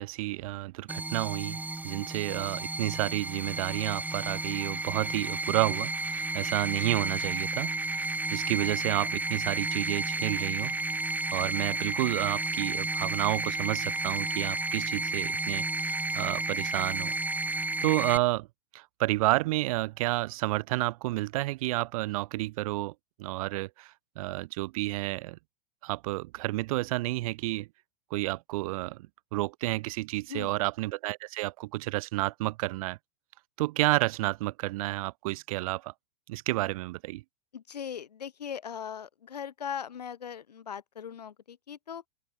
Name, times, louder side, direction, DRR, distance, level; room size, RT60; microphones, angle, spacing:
voice 1, 0.0-10.7 11.3-17.1 17.5-18.5 18.7-25.4 25.8-27.7 28.1-29.1 29.3-33.0 33.6-35.9 36.3-37.2, right 19 dB, 60° right, 2.2 m, -31 dB
sound 1, 0.9-18.2, right 3 dB, 10° right, 1.4 m, -32 dB
voice 2, 37.5-42.0, left 8 dB, 80° left, 7.8 m, -39 dB
open air
hypercardioid pair, 100°, 20 cm